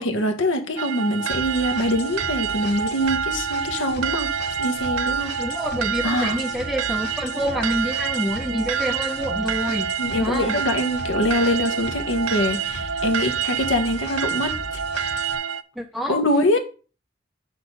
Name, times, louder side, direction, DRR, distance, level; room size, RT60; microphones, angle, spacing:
voice 1, 0.0-4.3 4.6-5.3 6.0-6.4 10.0-14.6 16.1-16.6, left 1 dB, 80° left, 1.3 m, -24 dB
sound 1, 0.8-15.6, right 7 dB, 90° right, 0.5 m, -27 dB
sound 2, 1.3-15.4, left 3 dB, 55° left, 0.8 m, -38 dB
voice 2, 5.4-10.6 15.8-16.2, equal, ahead, 0.5 m, -27 dB
6.4 x 4.4 x 5.5 m
head